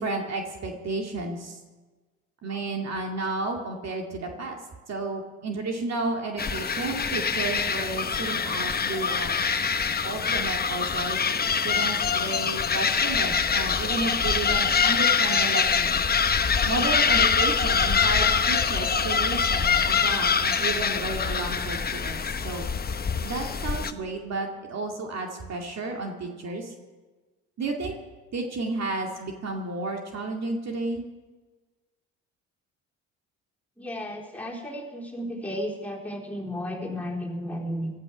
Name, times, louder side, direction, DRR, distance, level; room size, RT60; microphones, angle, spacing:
voice 1, 0.0-1.6 2.4-4.6 4.9-9.4 10.0-16.0 16.6-22.2 22.4-22.7 23.2-26.7 27.6-27.9 28.3-31.0, right 3 dB, 50° right, 2 dB, 2.4 m, -32 dB
sound 1, 6.4-23.9, left 6 dB, 30° left, 0.9 m, -24 dB
voice 2, 33.8-37.9, equal, 5° left, -2 dB, 4.2 m, -33 dB
17.0 x 13.0 x 6.3 m, 1.3 s
supercardioid pair, 80°, 32 cm